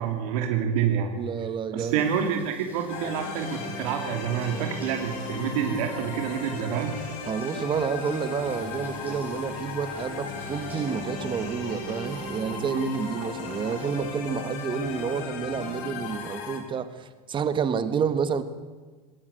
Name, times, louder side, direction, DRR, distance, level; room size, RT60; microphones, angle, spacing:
voice 1, 0.0-1.1 1.7-6.9, right 8 dB, 70° right, 4 dB, 2.8 m, -27 dB
voice 2, 1.1-2.1 7.3-18.4, right 6 dB, 25° right, 12 dB, 1.6 m, -29 dB
sound 1, 1.8-15.2, right 2 dB, 10° right, 6.9 m, -52 dB
sound 2, 2.9-16.6, left 5 dB, 70° left, 4.2 m, -36 dB
sound 3, 3.2-13.9, right 7 dB, 40° right, 2.9 m, -46 dB
21.0 x 17.5 x 8.2 m, 1.4 s
supercardioid pair, 140°, 19 cm